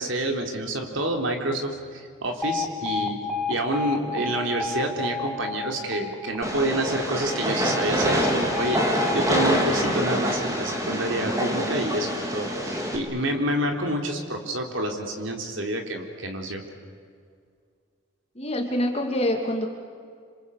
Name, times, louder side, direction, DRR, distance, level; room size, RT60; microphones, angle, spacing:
voice 1, 0.0-3.2 3.5-16.6, right 1 dB, 70° right, 3 dB, 3.7 m, -28 dB
Alarm, 2.4-10.5, left 4 dB, ahead, 1.7 m, -32 dB
Train, 6.4-13.0, equal, 15° right, 3.5 m, -25 dB
voice 2, 18.3-19.7, left 1 dB, 30° left, 2 dB, 2.7 m, -25 dB
26.5 x 26.5 x 8.4 m, 2.1 s
head